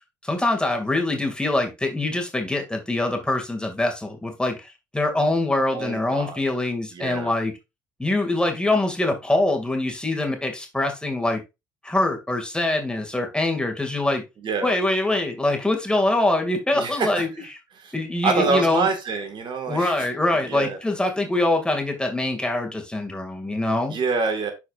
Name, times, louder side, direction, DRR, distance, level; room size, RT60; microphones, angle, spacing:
voice 1, 0.2-7.5 8.0-11.4 11.8-14.2 14.6-17.3 17.9-18.9 19.7-24.0, left 2 dB, 10° left, 2.4 m, -24 dB
voice 2, 5.7-6.4 6.9-7.3 14.4-14.7 16.7-17.3 17.8-17.9 18.2-20.1 20.5-20.8 23.9-24.5, right 4 dB, 50° right, 1.9 m, -26 dB
11.0 x 4.8 x 2.5 m
hypercardioid pair, 55°, 11 cm